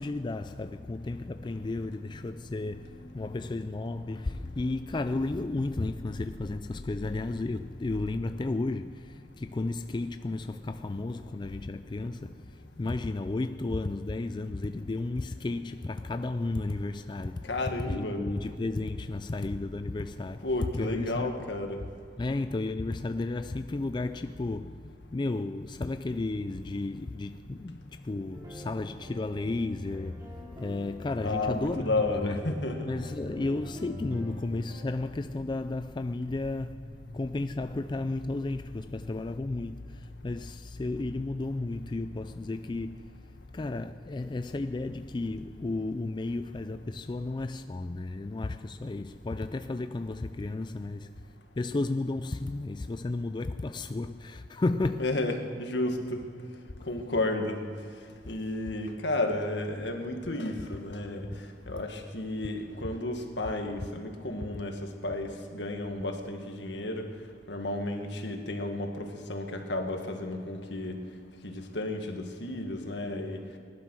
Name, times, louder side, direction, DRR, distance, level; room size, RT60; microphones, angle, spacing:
voice 1, 0.0-17.6 17.9-21.5 22.2-32.6 32.9-55.1, left 2 dB, 25° left, 0.3 m, -33 dB
voice 2, 17.4-18.2 20.4-21.8 31.2-32.9 55.0-56.2 56.9-57.6 58.3-61.3 61.7-67.1 67.5-71.0 71.4-73.4, left 2 dB, 75° left, 1.8 m, -32 dB
sound 1, 28.3-35.0, left 1 dB, 20° right, 2.5 m, -48 dB
20.0 x 11.5 x 6.3 m
head